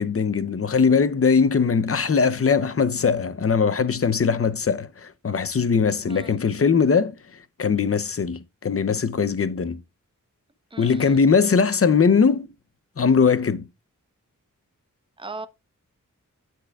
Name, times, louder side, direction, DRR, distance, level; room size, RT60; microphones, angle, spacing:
voice 1, 0.0-9.8 10.8-12.5 13.0-13.7, left 5 dB, 45° left, 0.7 m, -21 dB
voice 2, 10.7-11.2 15.2-15.5, right 3 dB, 15° right, 0.8 m, -38 dB
9.4 x 8.0 x 2.4 m
wide cardioid pair, 75°, 33 cm